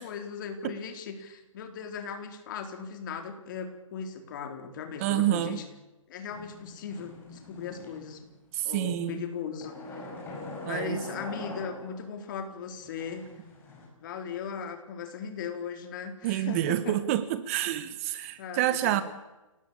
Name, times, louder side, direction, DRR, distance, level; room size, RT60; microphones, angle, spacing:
voice 1, 0.0-5.6 6.1-8.3 8.6-10.0 10.7-13.3 14.0-17.0 18.4-19.0, left 6 dB, 35° left, 7 dB, 4.1 m, -38 dB
voice 2, 5.0-5.6 8.5-9.2 10.7-11.0 16.2-19.0, right 13 dB, 25° right, 13 dB, 1.3 m, -28 dB
sound 1, 6.3-8.4 9.6-12.2 12.8-13.9, left 2 dB, 10° left, 5.9 m, -43 dB
29.0 x 18.5 x 8.7 m, 1.0 s
hypercardioid pair, 155°, 17 cm